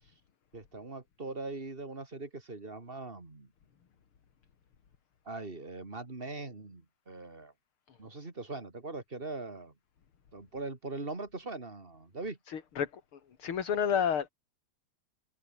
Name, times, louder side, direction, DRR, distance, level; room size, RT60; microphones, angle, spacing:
voice 1, 0.5-3.5 5.2-7.5 8.0-9.7 10.3-12.4, right 3 dB, 20° right, 2.9 m, -41 dB
voice 2, 12.5-14.3, left 8 dB, 50° left, 2.8 m, -31 dB
omnidirectional pair, 3.3 m